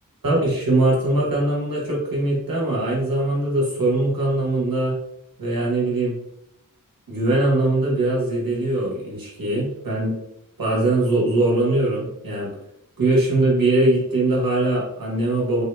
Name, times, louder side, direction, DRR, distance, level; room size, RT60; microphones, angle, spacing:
voice 1, 0.2-5.0 5.4-6.2 7.1-10.1 10.6-12.5 13.0-15.6, right 2 dB, 80° right, -5 dB, 1.2 m, -21 dB
3.6 x 2.7 x 2.2 m, 0.82 s
wide cardioid pair, 60°, 34 cm